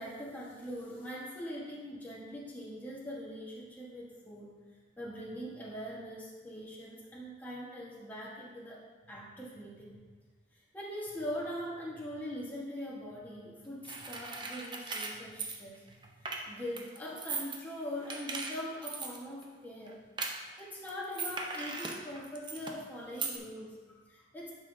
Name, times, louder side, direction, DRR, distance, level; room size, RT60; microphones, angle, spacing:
voice 1, 0.0-4.5 5.0-10.0 10.7-20.0 20.6-24.5, equal, 10° left, -6 dB, 1.3 m, -42 dB
sound 1, 13.8-16.4 16.8-17.6 18.0-19.2 19.4-19.5 19.9-20.0 20.2-20.6 20.9-22.8 23.2-23.4, right 4 dB, 25° right, 0.7 m, -38 dB
11.0 x 5.7 x 2.7 m, 1.4 s
head